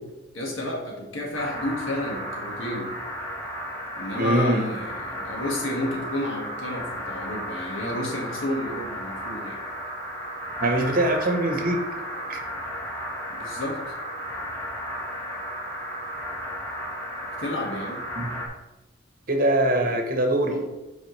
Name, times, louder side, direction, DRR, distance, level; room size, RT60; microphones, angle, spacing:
voice 1, 0.3-2.9 4.0-9.6 13.3-14.0 17.4-18.0 19.8-20.0 20.4-20.7, left 1 dB, 85° left, -1 dB, 1.7 m, -31 dB
sound 1, 1.3-18.5, equal, 15° left, 1.4 m, -34 dB
voice 2, 4.2-4.7 10.6-11.8 12.3-12.4 18.1-18.4 19.3-20.5, right 1 dB, 45° right, 4 dB, 0.9 m, -23 dB
7.5 x 4.9 x 3.2 m, 0.98 s
head